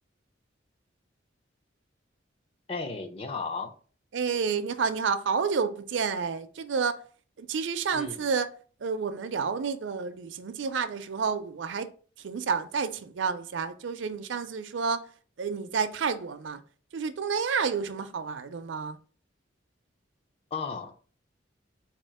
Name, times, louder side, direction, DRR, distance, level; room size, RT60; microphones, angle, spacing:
voice 1, 2.7-3.7 7.9-8.2 20.5-20.9, left 4 dB, 30° left, 0.5 m, -34 dB
voice 2, 4.1-7.0 7.4-8.5 8.8-11.9 12.2-15.1 15.4-16.6 16.9-19.0, right 5 dB, 75° right, 0.5 m, -30 dB
4.3 x 2.4 x 4.7 m
head